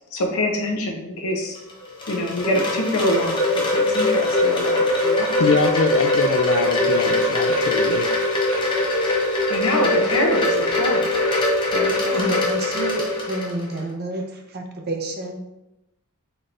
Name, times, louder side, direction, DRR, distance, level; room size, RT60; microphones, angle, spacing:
voice 1, 0.1-1.6 2.1-3.4 3.7-5.3 9.5-11.1 11.7-12.3, left 1 dB, 80° left, 1 dB, 0.7 m, -25 dB
Wind chime, 1.6-13.8, left 1 dB, 20° left, 0.6 m, -21 dB
voice 2, 5.4-8.1, left 5 dB, 60° left, 9 dB, 0.3 m, -23 dB
voice 3, 12.0-15.4, right 1 dB, 45° right, 3 dB, 0.6 m, -29 dB
4.0 x 3.3 x 2.5 m, 0.94 s
head